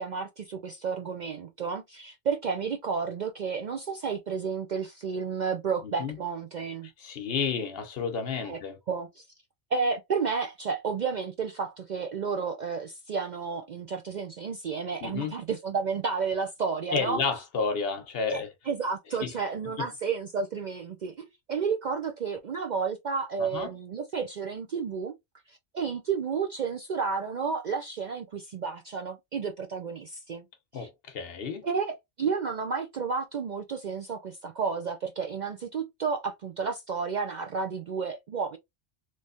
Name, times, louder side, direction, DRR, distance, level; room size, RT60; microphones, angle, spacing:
voice 1, 0.0-6.9 8.4-8.6 8.9-9.2 9.7-17.2 18.3-18.4 18.7-25.2 25.5-30.5 30.7-30.9 31.6-38.6, right 5 dB, 55° right, 0.5 m, -31 dB
voice 2, 7.0-8.8 15.0-15.3 16.9-18.5 19.2-19.3 19.8-19.9 23.4-23.7 30.7-31.7, left 5 dB, 60° left, 0.9 m, -31 dB
3.2 x 3.0 x 2.5 m
omnidirectional pair, 1.2 m